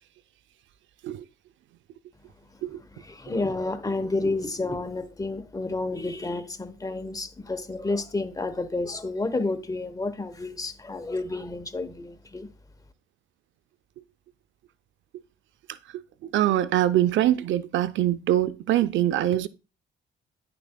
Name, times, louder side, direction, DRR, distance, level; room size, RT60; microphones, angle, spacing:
voice 1, 2.9-12.5, left 2 dB, 15° left, 0.9 m, -30 dB
voice 2, 15.9-19.5, right 13 dB, 75° right, 0.5 m, -23 dB
10.0 x 6.8 x 2.2 m
cardioid pair, 90°, 20 cm